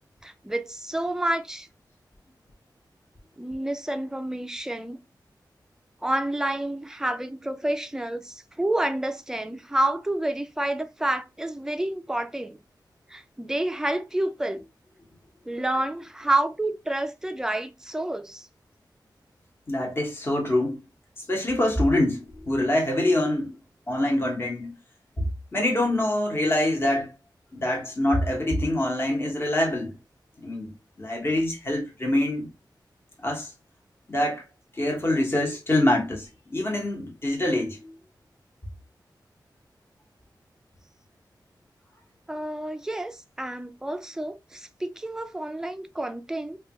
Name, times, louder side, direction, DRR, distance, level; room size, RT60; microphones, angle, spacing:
voice 1, 0.2-1.7 3.4-5.0 6.0-12.6 13.1-14.6 15.5-18.5 42.3-46.6, right 1 dB, 5° right, 0.3 m, -29 dB
voice 2, 19.7-20.8 21.2-23.5 23.9-24.7 25.5-27.1 27.5-29.9 30.4-30.7 31.0-32.5 33.2-33.5 34.1-34.4 34.7-37.9, left 1 dB, 30° left, 0.9 m, -25 dB
3.2 x 2.3 x 2.8 m
wide cardioid pair, 115°, 8 cm